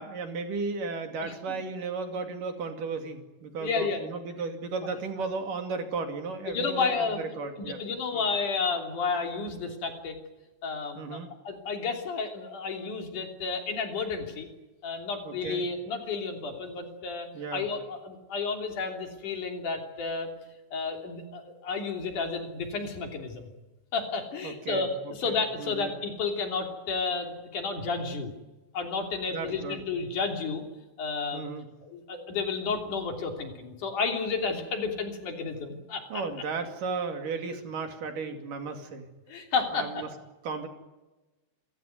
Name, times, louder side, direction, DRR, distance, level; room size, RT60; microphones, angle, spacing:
voice 1, 0.0-7.8 11.0-11.3 15.2-15.6 17.3-17.7 24.4-24.9 25.2-25.9 29.3-29.8 31.3-31.7 36.1-39.1 39.7-40.1 40.4-40.7, right 4 dB, 75° right, 5 dB, 4.1 m, -35 dB
voice 2, 1.2-1.6 3.6-4.0 6.5-7.2 7.6-10.2 10.6-14.5 14.8-20.3 20.7-23.5 23.9-28.3 28.7-30.6 31.0-31.4 31.8-36.2 39.3-40.0, left 4 dB, 65° left, 3 dB, 4.6 m, -31 dB
29.0 x 15.5 x 9.3 m, 1.1 s
omnidirectional pair, 3.8 m